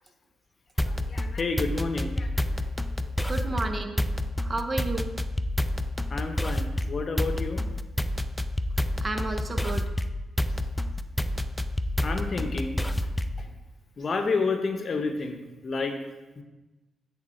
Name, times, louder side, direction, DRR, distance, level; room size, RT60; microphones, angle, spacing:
voice 1, 0.8-2.7 6.1-7.6 12.0-13.1 13.4-13.5 14.0-16.0 16.4-16.5, left 4 dB, 50° left, 6 dB, 0.8 m, -30 dB
sound 1, 0.8-13.5, left 1 dB, 10° left, 0.3 m, -29 dB
voice 2, 3.3-4.1 4.4-5.1 9.0-9.9, right 2 dB, 35° right, 6 dB, 0.8 m, -31 dB
8.5 x 3.6 x 4.3 m, 1.1 s
cardioid pair, 75°, 0 cm